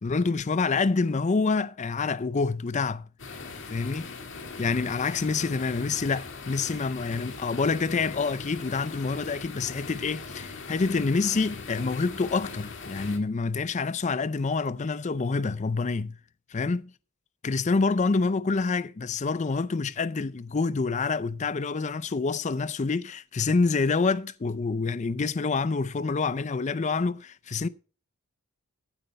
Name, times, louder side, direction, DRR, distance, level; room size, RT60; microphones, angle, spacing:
voice 1, 0.0-3.1 3.7-4.1 4.6-16.2 16.5-16.8 17.4-27.7, left 4 dB, 35° left, 0.4 m, -27 dB
sound 1, 3.2-13.2, left 4 dB, 60° left, 1.8 m, -40 dB
14.5 x 8.2 x 3.3 m
head